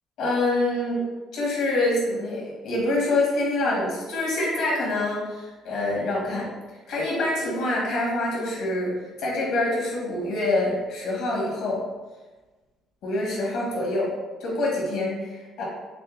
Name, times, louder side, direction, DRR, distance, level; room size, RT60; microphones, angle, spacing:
voice 1, 0.2-1.0 1.3-6.5 6.9-11.8 13.0-14.1 14.4-15.6, left 2 dB, 70° left, -4 dB, 1.1 m, -26 dB
6.2 x 2.1 x 2.5 m, 1.2 s
cardioid pair, 170°, 0 cm